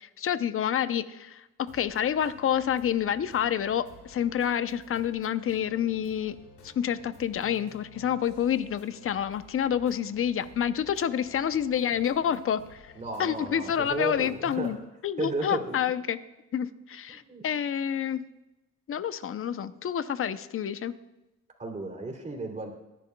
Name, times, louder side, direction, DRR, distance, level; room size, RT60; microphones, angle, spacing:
voice 1, 0.0-6.4 6.6-12.9 13.2-14.8 15.0-16.2 16.5-18.2 18.9-20.9, left 9 dB, 45° left, 14 dB, 0.6 m, -28 dB
sound 1, 1.6-14.7, left 3 dB, 90° left, 1.8 m, -53 dB
voice 2, 13.0-14.7 15.2-15.8 17.1-17.4 21.6-22.7, right 2 dB, 25° right, 2 dB, 3.0 m, -33 dB
23.0 x 10.5 x 2.3 m, 0.99 s
cardioid pair, 90°, 30 cm